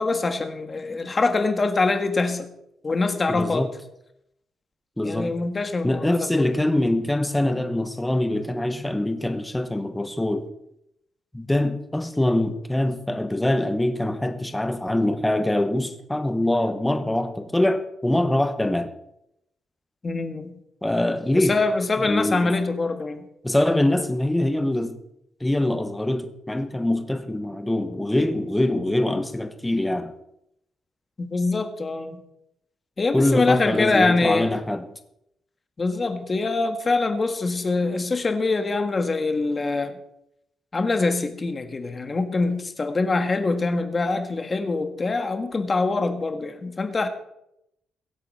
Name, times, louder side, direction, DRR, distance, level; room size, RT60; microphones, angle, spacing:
voice 1, 0.0-2.5 2.8-3.7 5.0-6.5 20.0-20.6 21.3-23.2 31.2-32.2 33.0-34.5 35.8-40.0 40.7-47.1, left 3 dB, 25° left, 1.6 m, -24 dB
voice 2, 3.3-3.7 5.0-5.3 5.8-10.5 11.3-18.9 20.8-21.6 22.0-22.5 23.4-25.0 25.4-30.1 33.1-34.9, left 1 dB, 5° left, 1.2 m, -24 dB
22.5 x 8.5 x 4.3 m
cardioid pair, 160°, 0 cm